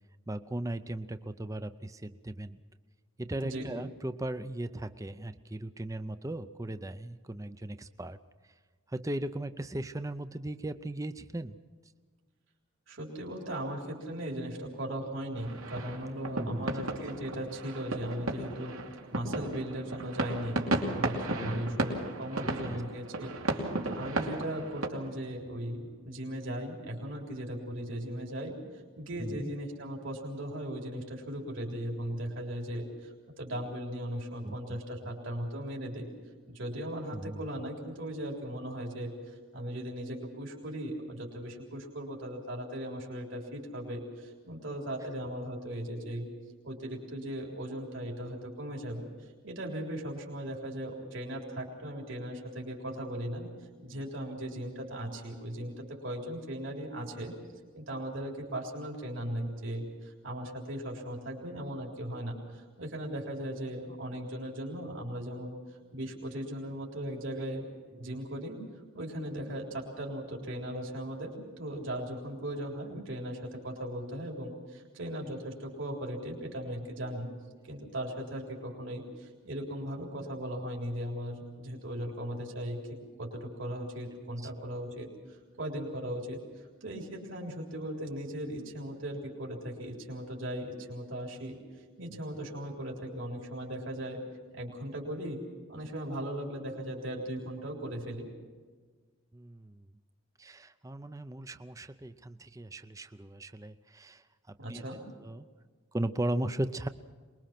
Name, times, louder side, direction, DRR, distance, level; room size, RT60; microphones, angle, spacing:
voice 1, 0.3-2.6 3.2-8.2 8.9-11.6 16.3-16.6 21.4-21.8 22.7-22.8 29.2-29.5 34.4-34.6 37.1-37.4 99.3-99.8 100.4-104.2 104.7-104.8 105.2-105.5 105.9-106.9, right 1 dB, 15° right, 11 dB, 0.5 m, -37 dB
voice 2, 12.9-18.8 19.1-28.6 29.0-36.1 36.5-46.3 46.6-53.5 53.8-57.3 57.7-65.5 65.9-67.7 68.0-68.6 68.9-77.3 77.7-82.8 83.2-91.6 92.0-94.2 94.5-95.4 95.7-98.3 104.6-105.0, right 1 dB, 65° right, -1 dB, 3.7 m, -38 dB
sound 1, 15.3-24.9, right 2 dB, 85° right, 2.8 m, -34 dB
23.5 x 21.5 x 5.9 m, 1.5 s
head